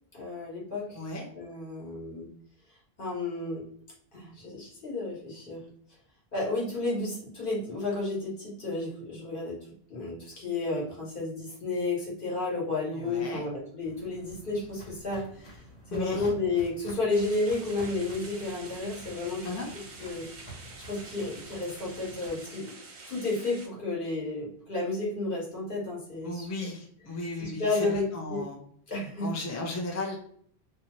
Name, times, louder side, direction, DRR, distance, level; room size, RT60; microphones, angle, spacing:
voice 1, 0.1-1.0 1.3-2.3 3.0-3.6 4.1-5.6 6.3-9.6 9.9-15.6 15.9-19.5 20.0-20.3 20.9-22.7 23.1-26.5 27.4-28.4 28.9-29.3, left 3 dB, 55° left, -5 dB, 1.2 m, -32 dB
voice 2, 12.9-13.4 15.9-16.3 19.4-19.7 26.2-28.6 29.2-30.2, left 2 dB, 25° left, -1 dB, 0.3 m, -35 dB
Walk footsteps, 13.8-22.3, right 1 dB, 80° left, 1.2 m, -49 dB
sound 1, 17.1-23.7, right 3 dB, 50° right, 0.7 m, -47 dB
2.7 x 2.3 x 2.9 m, 0.63 s
omnidirectional pair, 1.1 m